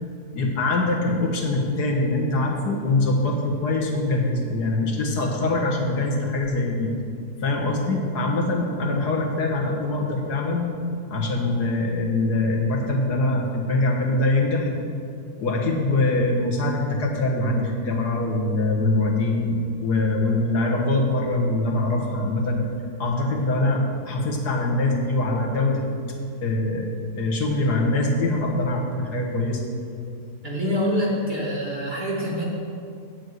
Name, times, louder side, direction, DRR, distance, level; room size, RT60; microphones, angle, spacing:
voice 1, 0.3-6.9 7.4-10.7 11.1-14.7 15.4-22.6 23.0-25.9 26.4-26.9 27.2-29.6, left 2 dB, 85° left, -1 dB, 1.9 m, -23 dB
voice 2, 30.4-32.4, equal, 30° right, -5 dB, 2.0 m, -25 dB
8.2 x 7.0 x 7.9 m, 2.5 s
omnidirectional pair, 1.7 m